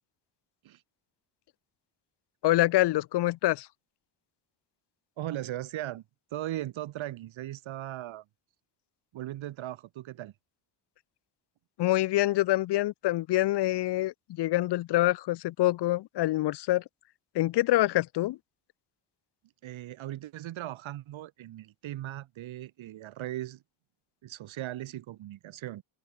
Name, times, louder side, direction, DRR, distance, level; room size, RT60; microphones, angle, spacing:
voice 1, 2.4-3.7 11.8-16.8 17.3-18.4, left 16 dB, 65° left, 0.5 m, -26 dB
voice 2, 5.2-6.0 6.3-8.2 9.1-10.3 19.6-23.6 24.2-25.8, right 14 dB, 90° right, 2.4 m, -38 dB
cardioid pair, 120°, 46 cm